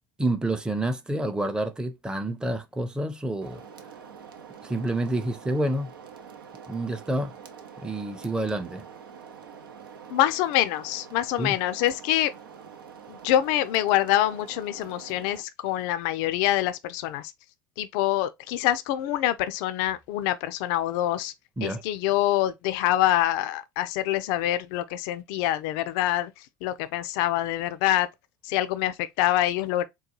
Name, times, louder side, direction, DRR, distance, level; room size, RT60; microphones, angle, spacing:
voice 1, 0.2-3.6 4.6-5.9 6.7-7.3 7.8-8.8 11.4-11.5 21.6-21.8, right 1 dB, 5° right, 0.6 m, -28 dB
sound 1, 3.4-15.4, right 7 dB, 90° right, 0.6 m, -46 dB
voice 2, 10.1-12.3 13.1-17.3 17.8-21.3 21.6-28.1 28.4-29.9, left 13 dB, 65° left, 0.4 m, -25 dB
3.8 x 2.2 x 2.9 m
hypercardioid pair, 85°, 11 cm